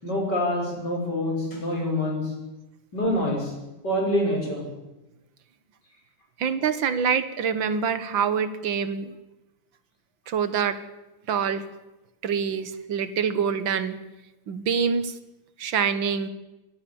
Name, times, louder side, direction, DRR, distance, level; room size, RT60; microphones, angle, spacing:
voice 1, 0.0-2.3 2.9-3.5 3.8-4.6, left 1 dB, 55° left, 1 dB, 6.5 m, -26 dB
voice 2, 6.4-9.1 10.3-10.8 11.3-11.7 12.2-14.0 14.5-15.2 15.6-16.3, right 6 dB, 75° right, 13 dB, 2.0 m, -25 dB
23.5 x 17.5 x 7.2 m, 1.0 s
omnidirectional pair, 2.1 m